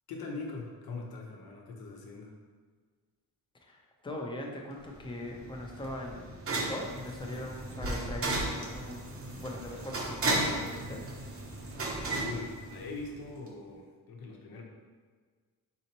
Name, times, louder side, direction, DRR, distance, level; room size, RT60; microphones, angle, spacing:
voice 1, 0.1-2.3 11.9-14.6, left 3 dB, 75° left, 0 dB, 0.9 m, -42 dB
voice 2, 3.6-9.1 9.4-11.0, left 1 dB, 15° left, 0 dB, 0.6 m, -40 dB
sound 1, 4.9-13.2, right 2 dB, 35° right, 0.8 m, -35 dB
4.2 x 4.2 x 2.9 m, 1.5 s
cardioid pair, 125°, 37 cm